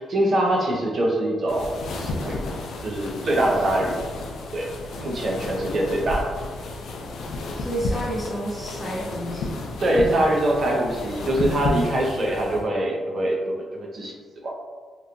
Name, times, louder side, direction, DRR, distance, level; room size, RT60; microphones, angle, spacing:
voice 1, 0.0-1.7 2.0-2.4 2.8-4.0 4.5-4.7 5.0-6.2 9.8-13.5 13.9-14.1 14.4-14.5, right 1 dB, 50° right, -1 dB, 0.6 m, -23 dB
sound 1, 1.5-12.7, left 2 dB, 80° left, 0.3 m, -32 dB
voice 2, 7.6-10.3, right 1 dB, 15° left, -8 dB, 0.9 m, -31 dB
2.9 x 2.2 x 2.5 m, 1.5 s
cardioid pair, 140°, 0 cm